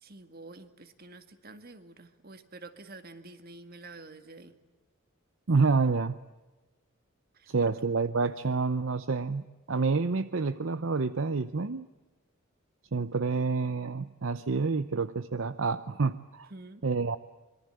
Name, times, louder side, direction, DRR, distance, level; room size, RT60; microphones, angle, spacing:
voice 1, 0.0-4.5 7.3-7.7 16.5-16.8, right 2 dB, 45° right, 9 dB, 2.0 m, -48 dB
voice 2, 5.5-6.2 7.5-11.9 12.9-16.5 16.8-17.2, right 4 dB, 65° right, 13 dB, 0.7 m, -28 dB
25.5 x 23.0 x 7.9 m, 1.2 s
head